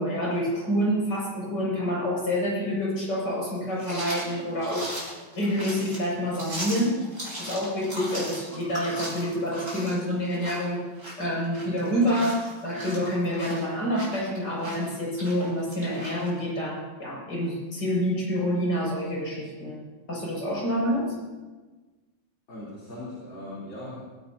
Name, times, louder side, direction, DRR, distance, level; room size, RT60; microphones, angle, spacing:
voice 1, 0.0-5.1 5.3-7.0 7.4-10.8 11.2-19.8 20.1-21.1, equal, 60° left, -4 dB, 6.7 m, -27 dB
sound 1, 3.8-16.3, right 1 dB, 40° right, 6.0 m, -38 dB
voice 2, 22.5-24.0, left 1 dB, 75° left, -8 dB, 4.4 m, -39 dB
25.5 x 16.5 x 2.8 m, 1.3 s
omnidirectional pair, 2.1 m